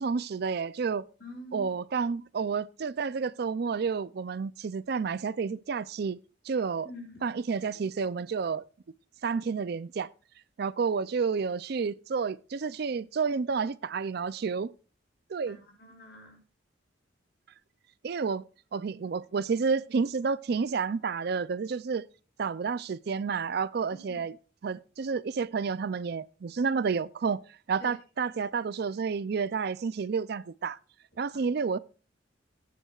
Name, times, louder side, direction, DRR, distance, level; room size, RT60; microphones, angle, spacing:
voice 1, 0.0-1.1 1.5-6.2 6.4-6.9 7.2-8.6 9.2-10.1 10.6-14.7 15.3-15.6 18.0-18.4 18.7-22.1 22.4-24.3 24.6-27.4 27.7-30.8 31.2-31.8, right 5 dB, 55° right, 0.4 m, -30 dB
voice 2, 1.2-1.7 6.8-7.3 15.5-16.4 24.1-24.2 27.8-27.9 31.1-31.2, left 1 dB, 55° left, 6.6 m, -46 dB
18.5 x 9.2 x 2.4 m
head